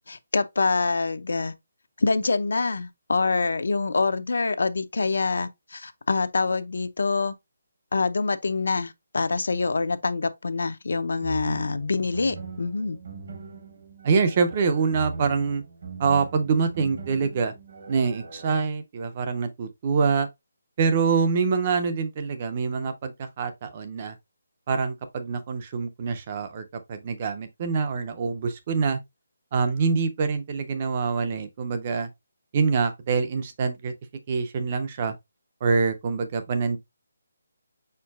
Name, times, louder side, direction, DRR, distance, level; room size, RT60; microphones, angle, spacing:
voice 1, 0.1-1.5 2.0-7.3 7.9-13.0, left 4 dB, 70° left, 0.5 m, -25 dB
sound 1, 11.2-18.6, right 4 dB, 50° right, 1.0 m, -40 dB
voice 2, 14.0-15.6 16.0-17.5 17.9-20.3 20.8-24.2 24.7-29.0 29.5-32.1 32.5-33.9 34.3-35.1 35.6-36.8, right 5 dB, 25° right, 0.4 m, -25 dB
4.6 x 4.4 x 2.3 m
hypercardioid pair, 175°, 0 cm